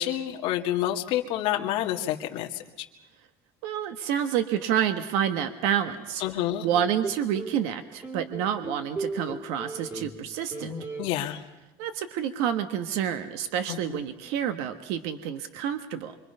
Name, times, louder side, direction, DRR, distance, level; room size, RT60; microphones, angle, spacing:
voice 1, 0.0-2.6 6.2-6.7 11.0-11.4 13.7-14.0, left 12 dB, 60° left, 3 dB, 2.1 m, -28 dB
voice 2, 3.6-6.2 6.6-10.7 11.8-16.2, right 9 dB, 70° right, 8 dB, 1.4 m, -28 dB
sound 1, 6.7-7.6 8.0-10.2 10.5-11.1, right 3 dB, 20° right, 2.3 m, -36 dB
27.0 x 25.0 x 5.6 m, 1.0 s
cardioid pair, 175°, 11 cm